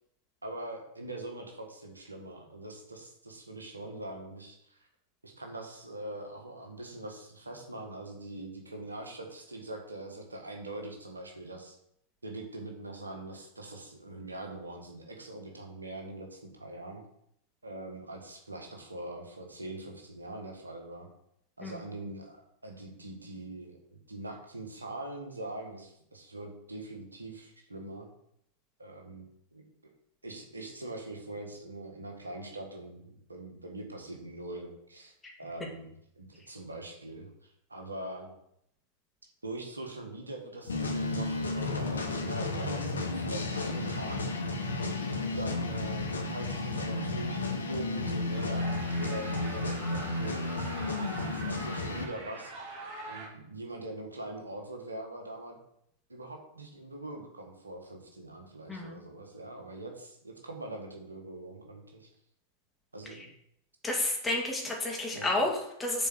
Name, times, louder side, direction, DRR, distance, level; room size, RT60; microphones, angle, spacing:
voice 1, 0.4-4.8 5.2-11.8 12.2-17.0 17.6-21.1 21.6-28.1 28.8-29.7 30.2-38.3 39.4-44.3 45.1-52.5 53.1-55.6 56.1-62.1 62.9-63.3 65.1-65.4, right 2 dB, 80° right, 2 dB, 1.5 m, -43 dB
sound 1, 40.7-52.0, left 2 dB, 75° left, 1.3 m, -33 dB
sound 2, 48.3-53.3, right 2 dB, 50° right, 3.2 m, -43 dB
voice 2, 58.7-59.0 63.8-66.1, left 2 dB, 15° left, -1 dB, 2.4 m, -31 dB
7.2 x 4.5 x 6.3 m, 0.73 s
figure-of-eight pair, 90°, 0 cm